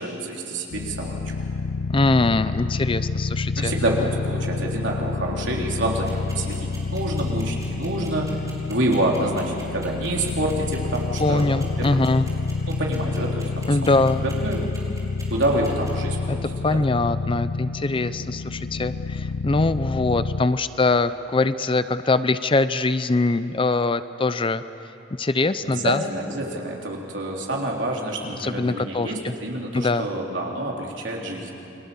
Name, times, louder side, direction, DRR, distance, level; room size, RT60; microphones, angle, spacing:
voice 1, 0.0-1.3 3.6-8.3 8.7-12.0 12.7-13.9 14.2-14.6 15.3-16.4 16.7-16.8 25.6-31.5, right 1 dB, 70° right, -1 dB, 3.6 m, -27 dB
sound 1, 0.7-20.5, left 3 dB, 85° left, 0.5 m, -28 dB
voice 2, 1.9-3.7 11.2-12.3 13.7-14.2 16.3-16.4 16.6-24.6 25.2-26.0 28.4-29.3 29.7-30.1, left 3 dB, 25° left, 13 dB, 0.6 m, -22 dB
sound 2, 5.9-15.9, right 3 dB, 20° right, 5.0 m, -44 dB
29.0 x 22.5 x 7.1 m, 2.9 s
head